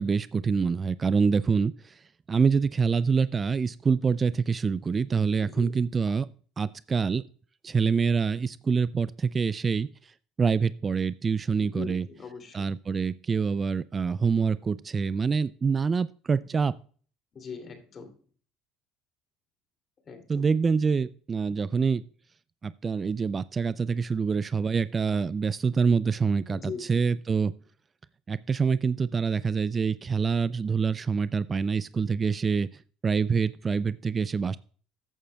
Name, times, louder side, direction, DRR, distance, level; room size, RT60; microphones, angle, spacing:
voice 1, 0.0-2.0 2.3-6.3 6.6-7.2 7.6-12.1 12.5-16.7 20.3-22.0 22.6-27.5 28.3-34.6, right 5 dB, 30° right, 17 dB, 0.3 m, -26 dB
voice 2, 5.4-5.8 11.5-12.6 17.3-18.2 20.0-20.4 26.5-27.1, left 5 dB, 35° left, 6 dB, 2.8 m, -41 dB
13.5 x 9.0 x 2.3 m, 0.44 s
supercardioid pair, 90°, 0 cm